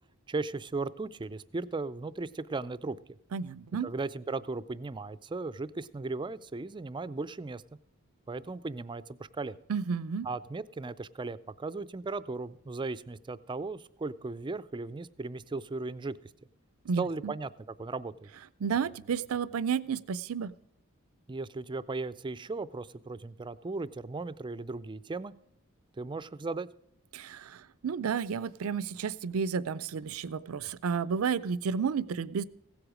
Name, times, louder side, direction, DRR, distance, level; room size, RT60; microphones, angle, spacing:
voice 1, 0.3-3.0 3.8-7.6 8.3-9.6 10.2-16.2 17.0-18.3 21.3-25.3 26.0-26.7, right 3 dB, 20° right, 16 dB, 0.4 m, -36 dB
voice 2, 3.3-3.9 9.7-10.3 16.9-17.3 18.6-20.5 27.1-32.4, right 6 dB, 80° right, 18 dB, 0.5 m, -32 dB
16.0 x 8.0 x 4.9 m, 0.77 s
head